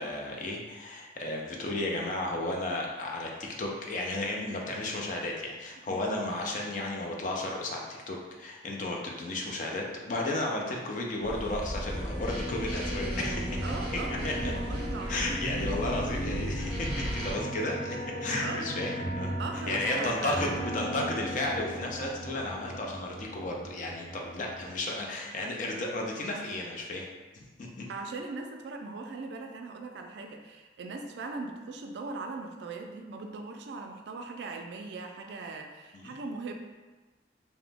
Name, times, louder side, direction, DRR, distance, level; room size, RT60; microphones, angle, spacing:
voice 1, 0.0-13.6 14.2-14.5 15.1-19.3 19.7-27.1 27.3-27.8 35.9-36.1, left 2 dB, 45° left, -1 dB, 0.4 m, -33 dB
sound 1, 11.2-17.3, equal, 25° left, 0.9 m, -36 dB
sound 2, 11.3-24.7, right 1 dB, 10° right, 0.5 m, -37 dB
voice 2, 13.6-15.4 18.4-18.7 19.4-20.4 27.9-36.5, right 3 dB, 65° right, 4 dB, 0.3 m, -39 dB
2.9 x 2.1 x 3.3 m, 1.2 s
head